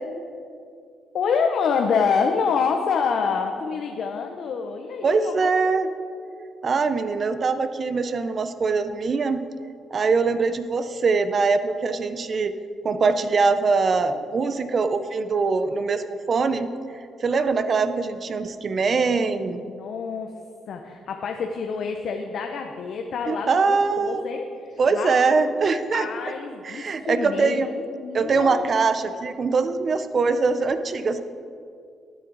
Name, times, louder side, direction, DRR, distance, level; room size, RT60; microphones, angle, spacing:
voice 1, 1.1-5.5 19.0-20.3 20.7-25.2 25.9-28.6, left 5 dB, 65° left, 4 dB, 0.7 m, -27 dB
voice 2, 5.0-5.9 6.6-9.4 9.9-12.5 12.8-16.7 17.2-19.6 23.3-24.2 24.8-26.1 26.6-27.7 28.1-31.2, right 4 dB, 45° right, 11 dB, 0.6 m, -22 dB
12.5 x 8.6 x 3.9 m, 2.3 s
cardioid pair, 90°, 0 cm